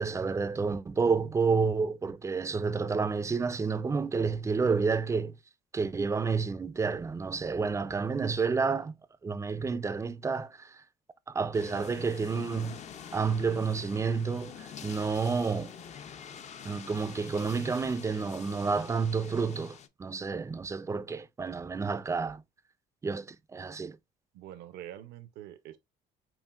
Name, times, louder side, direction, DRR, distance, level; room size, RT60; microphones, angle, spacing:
voice 1, 0.0-5.4 5.7-8.9 9.2-10.8 11.3-12.8 13.1-15.7 16.6-22.4 23.0-24.0, right 5 dB, 15° right, 0.3 m, -30 dB
sound 1, 11.5-19.9, left 7 dB, 45° left, 0.5 m, -46 dB
voice 2, 24.3-25.8, right 12 dB, 80° right, 0.6 m, -45 dB
5.7 x 2.5 x 2.3 m
cardioid pair, 110°, 17 cm